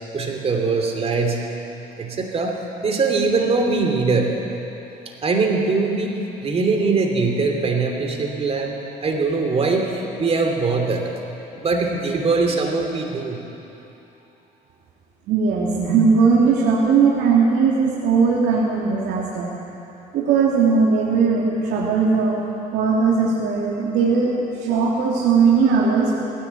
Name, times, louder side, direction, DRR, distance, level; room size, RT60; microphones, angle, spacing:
voice 1, 0.1-1.4 2.0-4.3 5.2-11.1 11.5-13.4, right 4 dB, 35° right, 3 dB, 3.0 m, -22 dB
voice 2, 15.3-19.5 20.1-22.4 22.7-24.3 24.6-26.2, right 5 dB, 80° right, -4 dB, 2.8 m, -18 dB
19.0 x 16.5 x 8.5 m, 3.0 s
cardioid pair, 110°, 17 cm